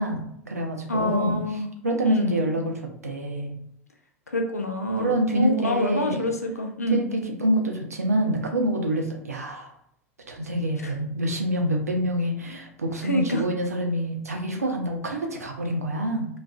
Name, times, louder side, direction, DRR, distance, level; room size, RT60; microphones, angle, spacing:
voice 1, 0.0-1.4 1.8-3.6 5.0-6.4 6.9-9.7 10.3-16.3, right 1 dB, 80° right, 2 dB, 0.5 m, -26 dB
voice 2, 0.9-1.7 2.0-2.5 4.3-7.0 10.8-10.9 13.0-13.4, left 1 dB, 85° left, 5 dB, 0.4 m, -26 dB
2.4 x 2.3 x 2.2 m, 0.72 s
figure-of-eight pair, 80°, 8 cm